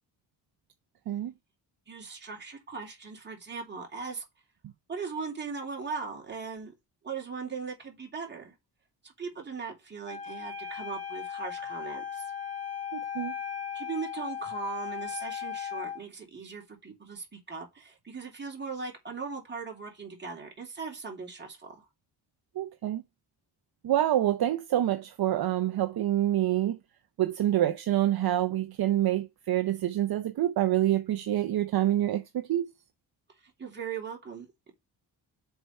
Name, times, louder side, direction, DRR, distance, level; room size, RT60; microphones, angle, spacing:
voice 1, 1.9-4.2 4.9-6.7 7.0-8.5 9.0-12.3 13.7-21.8 33.4-34.7, right 5 dB, 25° right, 2.9 m, -39 dB
Wind instrument woodwind instrument, 10.1-16.0, left 8 dB, 15° left, 1.5 m, -37 dB
voice 2, 12.9-13.3 22.6-23.0 23.8-26.8 27.2-32.6, right 12 dB, 60° right, 0.7 m, -27 dB
6.7 x 4.6 x 5.3 m
wide cardioid pair, 165°, 42 cm